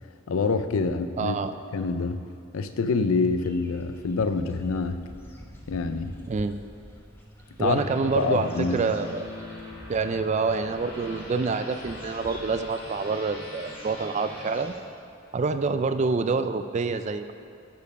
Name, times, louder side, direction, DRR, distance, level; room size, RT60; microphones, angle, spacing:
voice 1, 0.3-1.4 1.7-2.2 2.5-5.0 5.7-6.1 7.6-7.8 8.1-8.8, left 4 dB, 65° left, 10 dB, 0.5 m, -26 dB
voice 2, 1.2-1.5 6.3-6.6 7.6-9.3 9.9-14.7 15.3-17.3, right 4 dB, 30° right, 10 dB, 0.3 m, -27 dB
sound 1, 3.4-14.8, equal, 10° left, 0.8 m, -48 dB
sound 2, 7.7-14.6, left 1 dB, 45° left, 1.9 m, -42 dB
13.0 x 5.3 x 5.2 m, 2.5 s
head